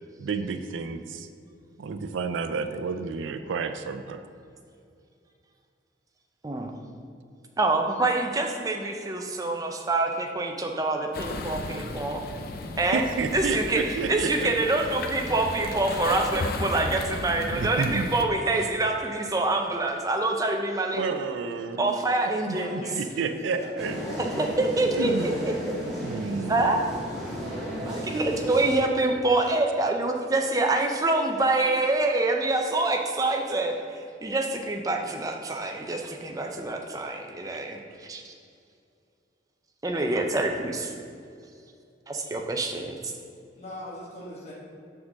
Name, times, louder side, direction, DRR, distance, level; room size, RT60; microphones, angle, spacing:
voice 1, 0.2-1.3 1.8-4.2 12.9-14.5 17.5-18.2 20.9-22.0 22.5-24.0 25.0-25.4 26.0-26.8 29.4-29.5, right 4 dB, 85° right, 9 dB, 0.4 m, -30 dB
voice 2, 7.6-12.2 12.8-13.0 13.3-21.0 21.8-22.7 24.2-25.5 26.5-26.8 27.5-38.3 39.8-40.9 42.1-43.1, right 2 dB, 20° right, 3 dB, 0.5 m, -26 dB
sound 1, 11.1-18.3, left 2 dB, 50° left, 0.4 m, -35 dB
voice 3, 22.5-23.7 43.5-44.5, left 1 dB, 35° left, -6 dB, 1.2 m, -40 dB
sound 2, 23.8-28.8, equal, ahead, 1.5 m, -34 dB
6.2 x 3.7 x 6.2 m, 2.5 s
head